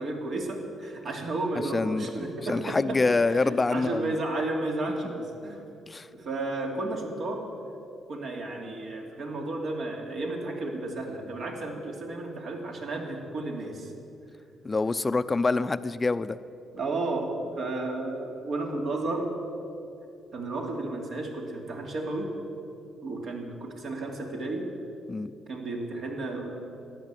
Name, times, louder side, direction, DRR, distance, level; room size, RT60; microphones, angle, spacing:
voice 1, 0.0-5.7 6.1-7.5 8.1-13.9 16.7-19.4 20.3-22.4 23.0-24.7 25.5-26.8, right 2 dB, 60° right, 1 dB, 2.8 m, -33 dB
voice 2, 1.7-4.1 5.0-5.2 5.9-6.1 14.6-16.4 25.1-25.3, left 3 dB, 25° left, 13 dB, 0.6 m, -26 dB
13.5 x 10.5 x 9.1 m, 2.7 s
cardioid pair, 90°, 0 cm